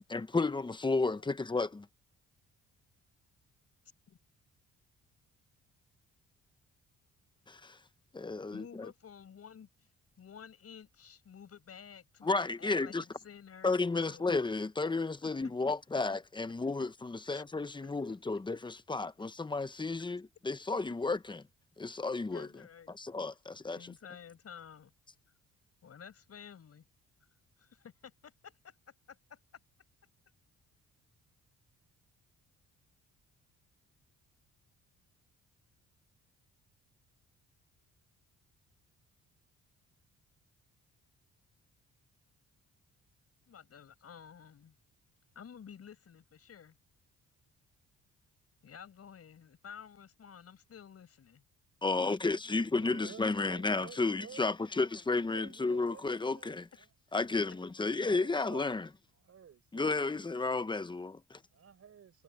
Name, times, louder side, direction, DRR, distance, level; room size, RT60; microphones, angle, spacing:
voice 1, 0.1-1.9 7.5-7.8 8.1-8.9 12.2-13.0 13.6-21.4 21.8-22.5 22.9-23.9 51.8-56.7 57.1-58.9 59.7-61.4, left 3 dB, 15° left, 1.0 m, -32 dB
voice 2, 8.5-9.7 10.2-14.3 15.2-15.3 17.3-17.4 17.8-17.9 22.3-22.9 23.7-24.9 25.8-26.8 27.6-28.7 29.1-29.4 43.5-44.7 45.4-46.8 48.6-51.4, left 7 dB, 50° left, 6.9 m, -52 dB
voice 3, 52.8-54.4 55.2-56.9 57.5-57.6 57.9-58.7 59.2-59.9 61.5-62.2, right 8 dB, 50° right, 6.0 m, -52 dB
cardioid pair, 90°, 30 cm